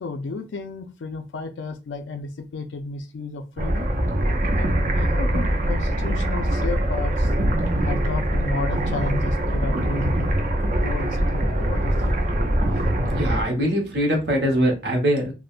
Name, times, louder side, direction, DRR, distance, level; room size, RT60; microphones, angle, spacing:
voice 1, 0.0-3.9 4.5-7.3 7.8-10.3 10.8-12.1, left 3 dB, 85° left, 7 dB, 0.4 m, -32 dB
sound 1, 3.6-13.4, right 1 dB, 45° right, 0.5 m, -23 dB
voice 2, 13.1-15.3, equal, 65° right, 1 dB, 0.9 m, -22 dB
3.5 x 2.1 x 2.4 m, 0.29 s
head